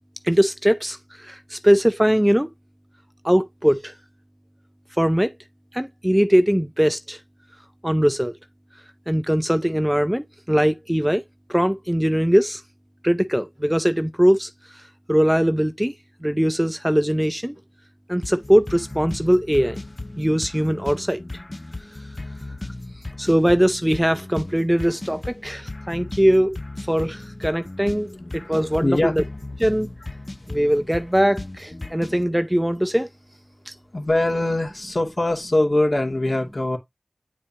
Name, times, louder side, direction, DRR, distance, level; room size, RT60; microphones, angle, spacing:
voice 1, 0.2-2.5 3.2-3.9 5.0-5.3 5.7-7.2 7.8-8.3 9.1-11.2 11.5-12.6 13.0-14.5 15.1-15.9 16.2-17.6 18.1-19.8 20.2-21.2 23.2-26.6 26.9-28.1 28.3-29.2 29.6-29.9 30.5-33.1 33.7-33.8, equal, 10° right, 0.6 m, -20 dB
sound 1, 18.2-32.2, left 2 dB, 35° left, 0.5 m, -36 dB
voice 2, 28.8-29.2 33.9-36.8, left 1 dB, 60° left, 2.5 m, -22 dB
8.9 x 4.4 x 2.9 m
wide cardioid pair, 50°, 0 cm